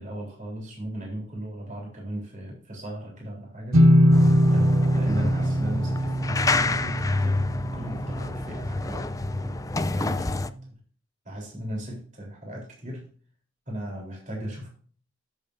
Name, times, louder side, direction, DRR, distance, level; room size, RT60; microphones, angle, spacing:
voice 1, 0.0-4.1 4.5-7.5 7.7-9.5 9.8-10.8 11.3-13.1 13.7-14.7, right 1 dB, 40° right, -1 dB, 3.8 m, -37 dB
sound 1, 3.7-9.3, equal, 80° right, 1.0 m, -22 dB
sound 2, 4.1-10.5, left 3 dB, 15° left, 0.4 m, -29 dB
13.5 x 7.3 x 2.7 m, 0.43 s
head